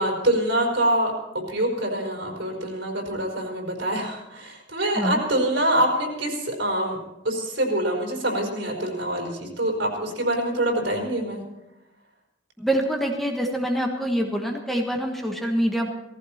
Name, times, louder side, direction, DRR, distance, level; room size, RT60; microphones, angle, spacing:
voice 1, 0.0-7.0 7.2-11.4, right 1 dB, 70° right, 0 dB, 4.7 m, -25 dB
voice 2, 12.6-15.9, equal, ahead, 1 dB, 1.4 m, -25 dB
18.5 x 15.0 x 4.4 m, 0.92 s
head